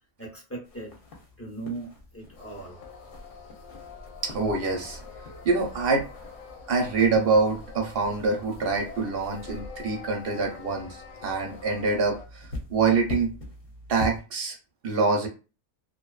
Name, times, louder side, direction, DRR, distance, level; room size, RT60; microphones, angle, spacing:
voice 1, 0.2-0.9 1.4-2.8, right 3 dB, 15° left, -4 dB, 0.5 m, -38 dB
sound 1, 0.6-14.2, left 2 dB, 55° left, 0.8 m, -43 dB
sound 2, 2.3-12.3, left 5 dB, 85° left, 1.0 m, -45 dB
voice 2, 4.2-5.0 5.4-6.1 6.7-13.3 13.9-14.6 14.8-15.3, right 4 dB, 60° right, 2 dB, 0.7 m, -25 dB
2.5 x 2.1 x 2.3 m, 0.33 s
omnidirectional pair, 1.2 m